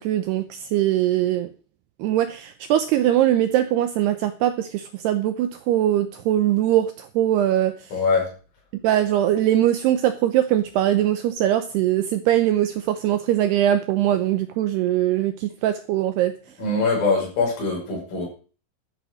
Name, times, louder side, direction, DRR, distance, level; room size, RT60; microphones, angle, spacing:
voice 1, 0.0-1.5 2.0-7.7 8.8-16.3, right 12 dB, 80° right, 9 dB, 2.3 m, -21 dB
voice 2, 7.9-8.3 16.6-18.3, left 3 dB, 45° left, -2 dB, 7.5 m, -22 dB
13.0 x 8.0 x 6.4 m, 0.39 s
omnidirectional pair, 5.6 m